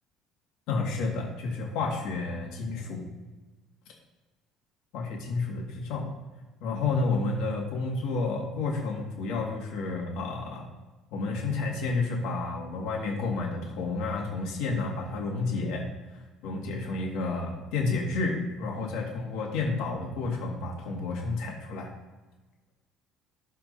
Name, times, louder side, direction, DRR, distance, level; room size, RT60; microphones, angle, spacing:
voice 1, 0.7-3.0 4.9-6.1 6.6-10.7 11.1-15.9 16.4-21.9, left 3 dB, 65° left, -1 dB, 2.5 m, -30 dB
12.0 x 4.5 x 4.2 m, 1.2 s
cardioid pair, 175°, 0 cm